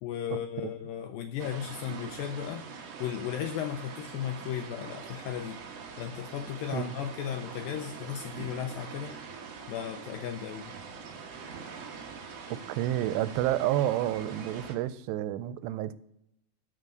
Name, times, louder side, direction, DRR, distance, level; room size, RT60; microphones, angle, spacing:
voice 1, 0.0-2.6 3.0-5.6 6.0-9.2 9.7-10.7, left 9 dB, 85° left, 2.0 m, -35 dB
sound 1, 1.4-14.7, right 5 dB, 70° right, 1.5 m, -43 dB
voice 2, 12.8-15.9, right 13 dB, 90° right, 2.7 m, -29 dB
12.0 x 5.2 x 7.7 m
omnidirectional pair, 4.8 m